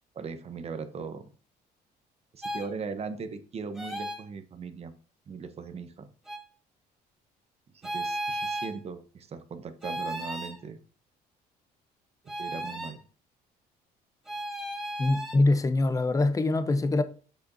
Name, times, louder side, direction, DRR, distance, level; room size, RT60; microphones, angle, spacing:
voice 1, 0.1-1.3 2.3-4.9 5.3-6.1 7.7-10.8 12.2-13.0, right 5 dB, 40° right, 1.0 m, -39 dB
sound 1, 2.4-2.7 3.8-4.2 6.3-6.4 7.8-8.8 9.8-10.6 12.3-13.0 14.3-15.4, right 1 dB, ahead, 2.5 m, -34 dB
voice 2, 15.0-17.0, left 2 dB, 20° left, 0.7 m, -24 dB
7.7 x 6.9 x 2.7 m
cardioid pair, 110°, 17 cm